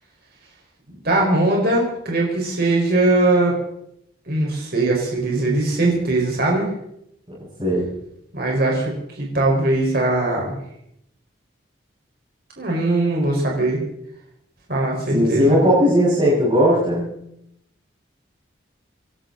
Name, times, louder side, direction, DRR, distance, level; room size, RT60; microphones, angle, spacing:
voice 1, 1.0-3.5 4.3-6.7 8.3-10.6 12.6-13.8 14.7-15.6, right 2 dB, 50° right, -1 dB, 4.7 m, -20 dB
voice 2, 15.1-17.1, equal, 25° right, -10 dB, 6.1 m, -17 dB
27.0 x 12.5 x 4.0 m, 0.77 s
head